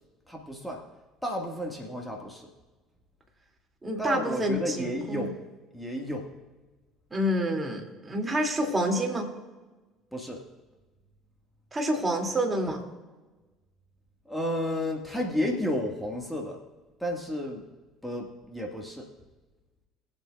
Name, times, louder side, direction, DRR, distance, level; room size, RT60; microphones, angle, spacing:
voice 1, 0.3-0.9 1.2-2.5 4.0-5.4 5.7-6.3 10.1-10.4 14.3-16.6 17.0-17.6 18.0-19.1, left 1 dB, 5° left, 0 dB, 2.0 m, -32 dB
voice 2, 3.8-5.3 7.1-9.3 11.7-12.8, right 1 dB, 20° right, 1 dB, 2.8 m, -28 dB
22.0 x 8.2 x 2.5 m, 1.2 s
hypercardioid pair, 60°, 0 cm